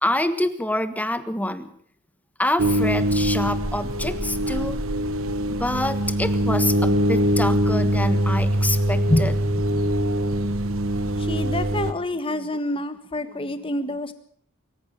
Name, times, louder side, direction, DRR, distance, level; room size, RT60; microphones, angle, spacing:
voice 1, 0.0-1.7 2.4-4.8 5.5-9.3, left 1 dB, 10° left, 12 dB, 1.4 m, -26 dB
sound 1, 2.6-11.9, equal, 70° right, 1.2 m, -23 dB
voice 2, 11.2-14.1, left 1 dB, 25° left, 11 dB, 1.6 m, -26 dB
24.5 x 14.5 x 7.4 m, 0.62 s
head